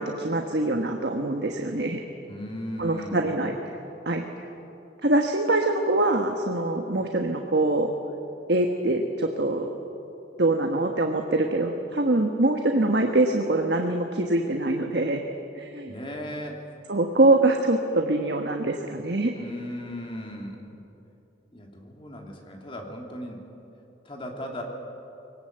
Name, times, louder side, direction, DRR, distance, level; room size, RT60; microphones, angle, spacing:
voice 1, 0.0-2.0 2.8-3.5 4.0-4.3 5.0-7.9 8.5-9.7 10.4-15.2 15.5-15.9 16.9-19.3, right 2 dB, 60° right, 3 dB, 1.3 m, -24 dB
voice 2, 2.3-3.3 15.9-16.7 19.3-20.6 21.5-23.4 24.0-24.6, equal, 30° left, 1 dB, 2.8 m, -37 dB
23.5 x 18.5 x 8.0 m, 2.9 s
head